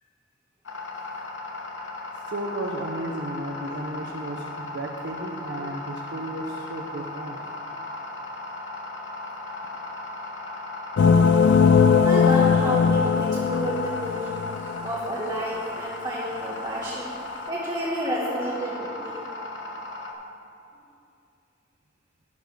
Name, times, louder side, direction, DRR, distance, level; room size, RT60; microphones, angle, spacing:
sound 1, 0.7-20.1, left 2 dB, 80° left, 1.1 m, -37 dB
voice 1, 2.3-7.4, right 1 dB, 65° right, 1 dB, 0.7 m, -33 dB
sound 2, 11.0-14.9, left 6 dB, 65° left, 0.3 m, -19 dB
voice 2, 12.0-17.2 17.5-19.2, right 1 dB, 25° right, -5 dB, 1.2 m, -31 dB
11.5 x 5.2 x 6.6 m, 2.5 s
head